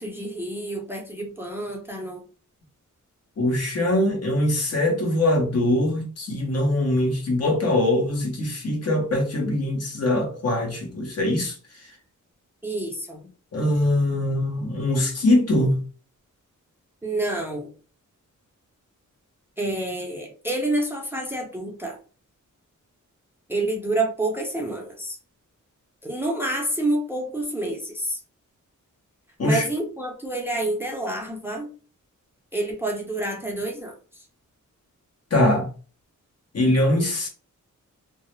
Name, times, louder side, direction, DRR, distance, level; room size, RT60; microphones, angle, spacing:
voice 1, 0.0-2.2 12.6-13.2 17.0-17.7 19.6-22.0 23.5-25.2 26.0-28.2 29.4-31.7 32.5-33.9, right 2 dB, 5° right, 0.6 m, -28 dB
voice 2, 3.4-11.5 13.5-15.8 29.4-29.7 35.3-35.7 36.5-37.3, left 1 dB, 50° left, 0.9 m, -22 dB
2.3 x 2.0 x 3.0 m
wide cardioid pair, 100°, 31 cm